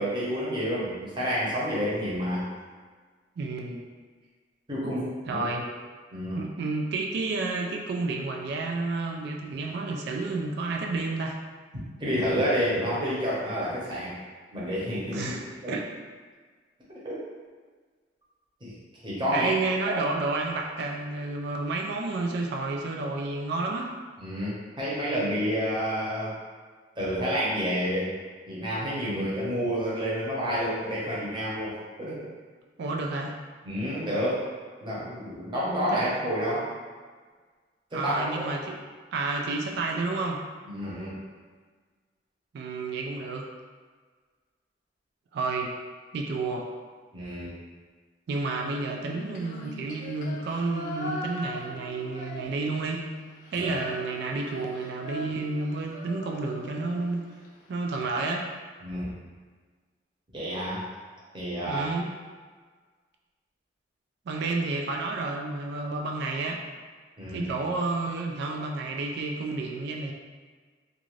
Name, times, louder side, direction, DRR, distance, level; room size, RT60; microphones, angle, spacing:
voice 1, 0.0-2.5 4.7-5.4 6.1-6.4 12.0-14.2 14.5-15.7 17.0-17.1 18.6-18.7 19.0-19.5 24.2-26.3 27.0-28.1 28.5-32.3 33.6-34.4 34.8-36.6 37.9-38.5 40.7-41.2 47.1-47.6 53.5-53.7 58.8-59.1 60.3-60.9 61.3-61.9 67.2-67.5, equal, 25° right, -8 dB, 0.8 m, -29 dB
voice 2, 3.4-3.8 5.3-5.7 6.3-11.4 15.1-15.4 15.7-15.8 19.3-23.9 32.8-33.3 35.9-36.0 37.9-38.8 39.1-40.4 42.5-43.5 45.3-45.7 46.1-46.7 48.3-53.0 53.5-57.3 57.7-58.5 61.7-62.1 64.3-66.6 67.3-70.1, right 3 dB, 60° right, 1 dB, 0.3 m, -30 dB
Female singing, 49.0-52.9 53.2-57.5, left 1 dB, 45° left, 0.5 m, -40 dB
2.5 x 2.4 x 3.1 m, 1.5 s
head